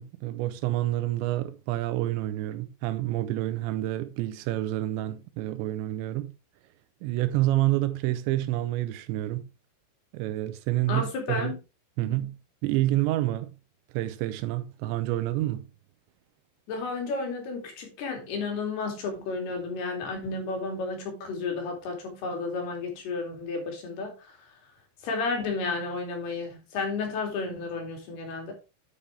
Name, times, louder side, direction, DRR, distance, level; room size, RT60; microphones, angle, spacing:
voice 1, 0.0-6.3 7.0-9.5 10.1-11.5 12.0-12.4 12.6-13.6 13.9-15.7, right 15 dB, 90° right, 3.0 m, -28 dB
voice 2, 10.9-11.5 12.0-12.2 16.7-24.3 25.0-28.5, left 4 dB, 65° left, 4.5 m, -32 dB
8.9 x 8.7 x 3.3 m
omnidirectional pair, 5.1 m